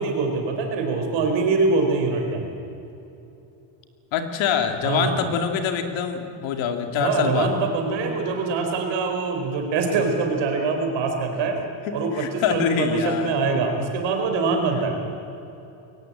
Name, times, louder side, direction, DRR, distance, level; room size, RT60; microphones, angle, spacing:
voice 1, 0.0-2.5 4.8-5.3 6.9-11.6 11.9-15.0, right 4 dB, 60° right, 3 dB, 4.6 m, -24 dB
voice 2, 4.1-7.5 11.9-13.4, left 7 dB, 65° left, 6 dB, 2.4 m, -25 dB
22.5 x 18.0 x 8.7 m, 2.8 s
cardioid pair, 160°, 49 cm